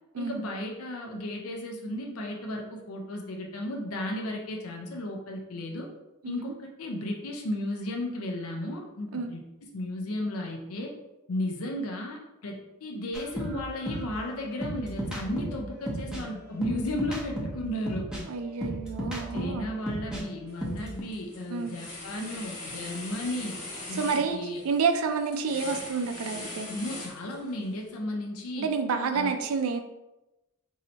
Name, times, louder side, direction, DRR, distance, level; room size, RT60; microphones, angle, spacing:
voice 1, 0.2-5.9 6.3-9.4 9.7-10.9 11.3-18.1 19.3-23.6 23.9-24.6 26.7-28.7 29.1-29.3, left 1 dB, 70° left, 1 dB, 0.5 m, -34 dB
sound 1, 13.1-20.2 20.5-21.0, right 1 dB, 5° right, 0.6 m, -35 dB
voice 2, 18.3-19.7 21.5-21.8 23.9-24.4 24.6-26.7 28.6-29.8, right 5 dB, 70° right, 7 dB, 0.4 m, -29 dB
sound 2, 20.5-20.8 21.1-27.6, left 2 dB, 40° left, 1.0 m, -41 dB
2.7 x 2.6 x 4.3 m, 0.98 s
head